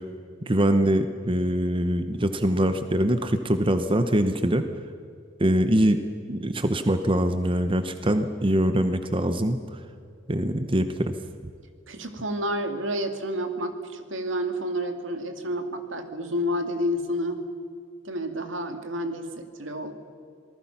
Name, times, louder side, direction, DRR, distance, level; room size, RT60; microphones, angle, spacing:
voice 1, 0.5-4.7 5.4-6.0 6.3-9.6 10.3-11.2, right 1 dB, 25° right, 9 dB, 0.9 m, -23 dB
voice 2, 11.9-17.4 18.0-19.9, equal, 90° right, 6 dB, 2.3 m, -30 dB
26.5 x 19.5 x 5.8 m, 2.2 s
head